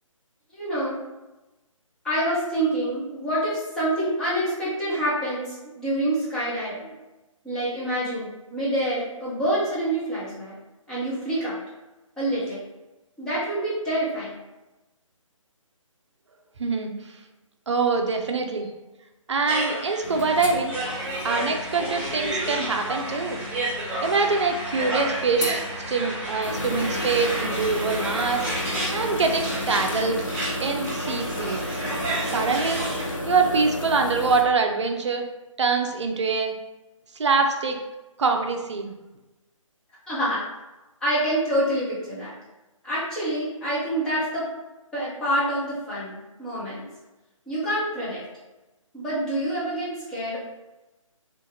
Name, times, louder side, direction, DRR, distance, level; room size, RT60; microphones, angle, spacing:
voice 1, 0.6-1.0 2.0-7.0 7.4-10.6 10.9-11.6 12.2-12.6 13.2-14.4 18.6-18.7 40.1-40.4 41.0-42.3 42.8-44.5 44.9-46.8 47.5-48.2 48.9-50.4, right 1 dB, 5° left, -11 dB, 0.5 m, -27 dB
voice 2, 16.6-17.1 17.7-18.7 19.3-20.8 21.2-23.4 24.0-25.6 25.9-30.3 30.6-31.6 32.2-32.8 33.3-35.3 35.6-36.5 37.1-37.8 38.2-38.9, right 4 dB, 60° right, 4 dB, 0.5 m, -24 dB
sound 1, 19.5-33.1, right 1 dB, 25° right, 1.1 m, -31 dB
sound 2, 20.0-34.4, left 1 dB, 70° left, 0.7 m, -33 dB
2.5 x 2.5 x 2.7 m, 1.1 s
figure-of-eight pair, 145°, 17 cm